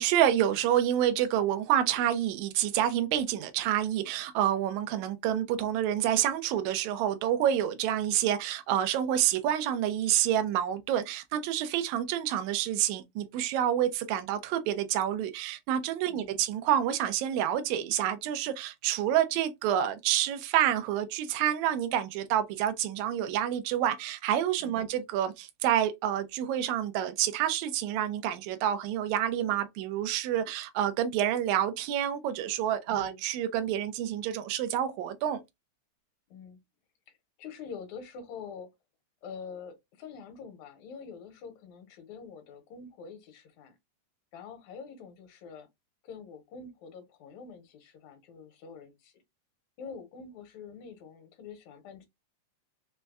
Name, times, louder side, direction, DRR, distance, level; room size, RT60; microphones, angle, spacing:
voice 1, 0.0-35.4, right 11 dB, 80° right, 1.9 m, -28 dB
voice 2, 16.1-16.4 24.6-24.9 32.9-33.2 36.3-36.6 37.1-38.7 39.2-43.8 44.3-45.7 46.0-49.1 49.8-52.1, left 6 dB, 70° left, 2.1 m, -46 dB
5.2 x 2.2 x 2.2 m
omnidirectional pair, 3.5 m